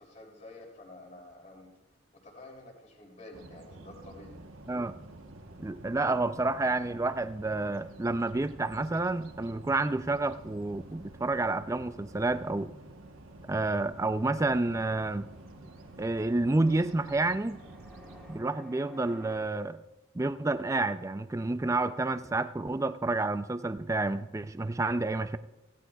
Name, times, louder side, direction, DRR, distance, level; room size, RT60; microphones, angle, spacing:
voice 1, 0.0-1.7 2.2-4.4, left 2 dB, 35° left, 0 dB, 2.9 m, -49 dB
sound 1, 3.3-18.4, right 1 dB, 85° right, 1.1 m, -50 dB
voice 2, 5.6-12.7 13.5-15.3 16.0-17.6 18.3-19.8 20.1-25.4, right 2 dB, 15° right, 12 dB, 0.3 m, -29 dB
Fixed-wing aircraft airplane, 14.6-19.4, equal, 5° left, 1.6 m, -54 dB
16.5 x 16.0 x 2.3 m, 1.0 s
head